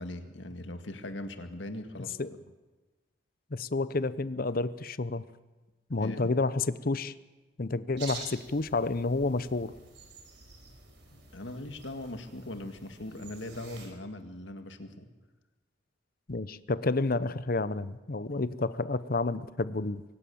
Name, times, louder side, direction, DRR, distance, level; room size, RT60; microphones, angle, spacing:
voice 1, 0.0-2.2 6.0-6.3 11.1-15.1, left 1 dB, 80° left, 7 dB, 2.0 m, -40 dB
voice 2, 3.5-5.2 5.9-7.1 7.6-9.7 16.3-20.0, left 3 dB, 50° left, 15 dB, 0.8 m, -30 dB
sound 1, 8.0-13.9, right 4 dB, 65° right, 5.1 m, -48 dB
23.5 x 18.0 x 7.1 m, 1.2 s
head